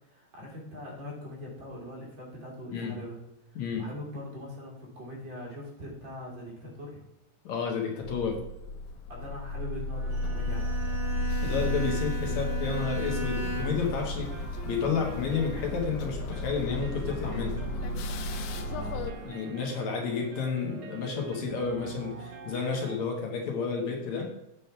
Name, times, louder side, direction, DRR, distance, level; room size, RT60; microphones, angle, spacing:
voice 1, 0.1-3.2 3.5-7.0 9.1-10.8 18.5-19.5, left 1 dB, 40° right, -4 dB, 3.3 m, -42 dB
voice 2, 7.4-8.4 11.4-17.6 19.2-24.3, left 5 dB, 65° left, 1 dB, 2.5 m, -31 dB
sound 1, 8.0-19.1, left 1 dB, 85° left, 2.2 m, -33 dB
Bowed string instrument, 10.0-14.0, left 3 dB, 45° left, 2.1 m, -37 dB
sound 2, 10.1-23.0, right 5 dB, 70° right, 2.1 m, -45 dB
8.0 x 5.2 x 5.7 m, 0.91 s
omnidirectional pair, 3.6 m